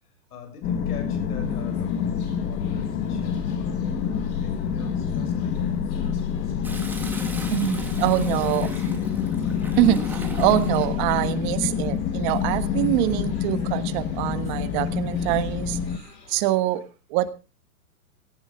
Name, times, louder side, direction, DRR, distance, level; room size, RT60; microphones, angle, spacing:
voice 1, 0.3-7.0 8.1-9.3 10.0-10.1, left 5 dB, 65° left, 7.7 m, -43 dB
sound 1, 0.6-16.0, left 7 dB, 20° left, 1.2 m, -27 dB
sound 2, 1.4-16.5, left 3 dB, 90° left, 6.2 m, -47 dB
Toilet flush, 6.6-10.9 12.3-12.8, right 2 dB, 5° right, 2.3 m, -39 dB
voice 2, 7.5-8.7 9.8-15.8 16.3-16.8 17.1-17.3, right 15 dB, 30° right, 1.4 m, -24 dB
17.5 x 16.0 x 3.7 m
hypercardioid pair, 160°, 49 cm